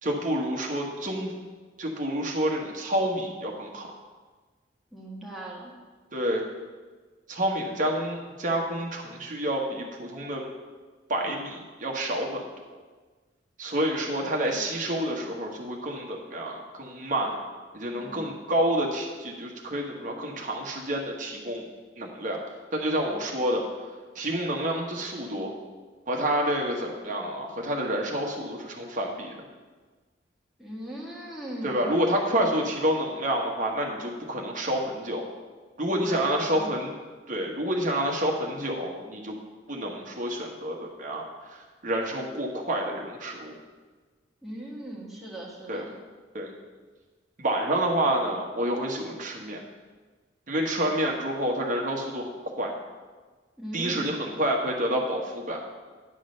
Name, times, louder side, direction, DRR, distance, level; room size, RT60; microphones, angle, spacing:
voice 1, 0.0-1.3 1.8-3.9 6.1-6.4 7.3-10.4 11.1-12.4 13.6-17.3 17.7-21.7 22.0-22.4 22.7-23.6 24.1-25.5 26.1-29.3 31.6-35.2 35.8-36.9 37.3-39.3 39.7-43.6 45.7-45.8 46.3-46.5 47.4-49.6 50.5-52.3 52.6-52.7 53.7-55.6, right 1 dB, 45° right, -1 dB, 1.2 m, -28 dB
voice 2, 4.9-5.7 14.0-14.2 14.5-14.7 17.9-18.2 23.1-23.2 30.6-31.9 36.0-36.7 44.4-45.9 53.6-54.1, right 1 dB, ahead, -5 dB, 1.6 m, -39 dB
9.4 x 3.8 x 6.4 m, 1.4 s
head